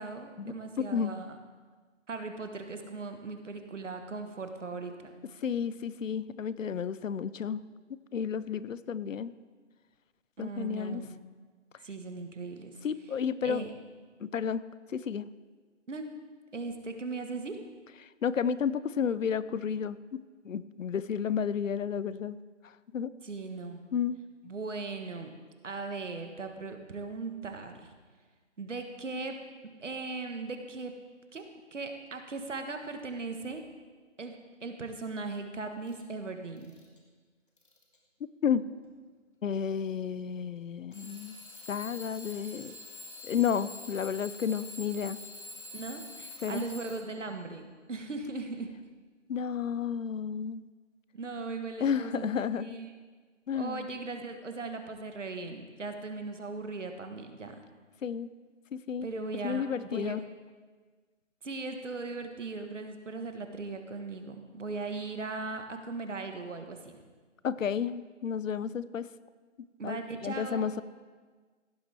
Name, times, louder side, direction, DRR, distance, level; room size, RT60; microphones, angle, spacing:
voice 1, 0.0-1.4 2.1-5.1 10.4-11.1 11.8-12.7 13.4-13.7 15.9-16.1 16.5-17.6 23.2-23.8 24.4-25.3 25.6-27.9 28.6-29.3 29.8-30.9 31.3-31.4 31.7-33.6 34.2-36.7 45.7-48.7 51.1-52.9 53.5-57.6 59.0-60.2 61.4-67.0 69.8-70.7, right 3 dB, 70° right, 6 dB, 1.4 m, -38 dB
voice 2, 5.4-7.6 8.1-9.3 10.4-11.0 12.8-13.6 14.2-15.3 18.2-22.4 22.6-23.1 23.9-24.2 38.4-38.6 39.4-41.4 41.7-42.8 43.2-45.2 46.4-46.6 49.3-50.6 51.8-52.8 53.5-53.8 58.0-58.3 58.7-59.1 59.4-60.2 67.4-69.1 69.8-70.8, left 7 dB, 80° left, 16 dB, 0.6 m, -32 dB
Alarm / Clock, 35.9-36.0 36.6-37.0 37.6-38.0 38.8-38.9 40.9-47.3, left 3 dB, 40° left, 1.5 m, -46 dB
16.0 x 7.2 x 3.4 m, 1.4 s
hypercardioid pair, 175°, 38 cm